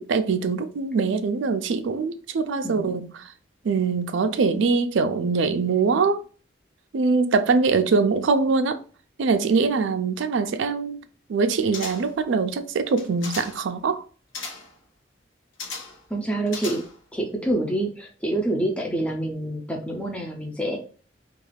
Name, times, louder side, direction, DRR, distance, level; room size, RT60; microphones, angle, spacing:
voice 1, 0.0-3.2 3.6-6.2 6.9-8.8 9.2-11.0 11.3-14.0, right 4 dB, 80° right, 0.4 m, -23 dB
voice 2, 2.6-2.9 16.1-16.8 17.1-20.8, right 1 dB, 5° left, 0.4 m, -27 dB
sound 1, 11.7-12.2 12.9-13.7 14.3-14.8 15.6-16.1 16.5-17.1 17.5-17.6, left 4 dB, 85° left, 0.8 m, -36 dB
2.4 x 2.3 x 3.1 m
head